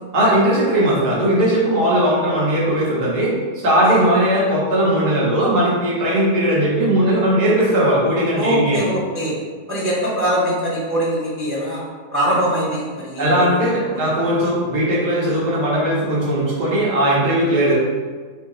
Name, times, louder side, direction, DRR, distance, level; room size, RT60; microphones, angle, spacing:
voice 1, 0.1-3.3 3.6-8.9 13.2-17.7, right 1 dB, 80° right, -6 dB, 1.7 m, -18 dB
voice 2, 8.3-9.3 9.7-11.8 12.1-13.6 13.9-14.2, equal, 15° right, -6 dB, 0.5 m, -22 dB
3.6 x 3.0 x 3.8 m, 1.5 s
omnidirectional pair, 1.7 m